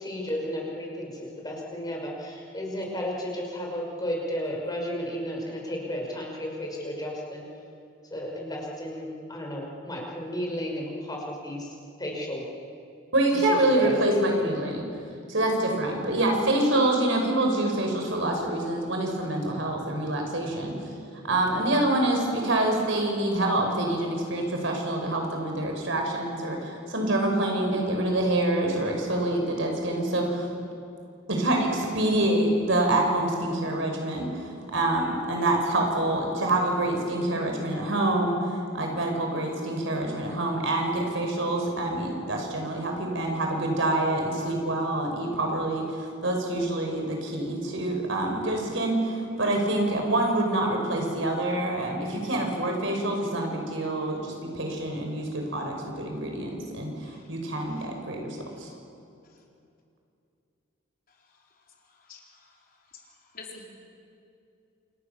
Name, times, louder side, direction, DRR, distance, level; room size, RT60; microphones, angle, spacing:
voice 1, 0.0-7.4 8.1-11.7 12.0-12.4 13.5-14.2, equal, 20° left, -1 dB, 6.2 m, -33 dB
voice 2, 13.1-14.8 15.3-20.7 21.2-30.5 31.3-34.3 34.7-58.7, right 1 dB, 70° right, 2 dB, 6.0 m, -26 dB
voice 3, 61.9-62.6 62.9-63.0 63.3-63.7, left 4 dB, 50° left, 0 dB, 4.5 m, -48 dB
28.5 x 28.0 x 7.2 m, 2.5 s
head